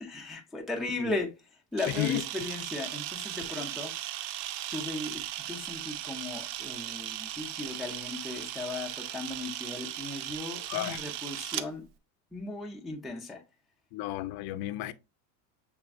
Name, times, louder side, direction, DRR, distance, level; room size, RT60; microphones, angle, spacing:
voice 1, 0.0-1.3 1.7-3.9 4.7-11.8 12.3-13.4, left 2 dB, ahead, 0.5 m, -37 dB
Camera, 1.8-11.7, right 13 dB, 85° right, 0.6 m, -37 dB
voice 2, 1.9-2.2 10.7-11.0 13.9-14.9, left 14 dB, 50° left, 0.5 m, -32 dB
5.8 x 3.5 x 2.3 m
supercardioid pair, 120°, 48 cm